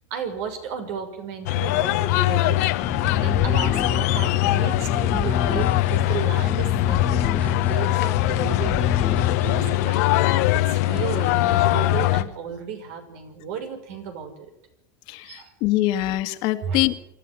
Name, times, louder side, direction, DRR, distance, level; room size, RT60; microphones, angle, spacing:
voice 1, 0.1-2.9 3.2-14.5 15.2-15.5 16.6-16.8, right 7 dB, 70° right, 6 dB, 6.0 m, -34 dB
sound 1, 1.5-12.2, left 17 dB, 80° left, 1.3 m, -22 dB
sound 2, 2.8-9.9, left 6 dB, 20° left, 1.0 m, -28 dB
voice 2, 15.1-16.9, left 16 dB, 65° left, 8 dB, 2.0 m, -24 dB
24.5 x 13.5 x 9.8 m, 0.84 s
supercardioid pair, 120°, 8 cm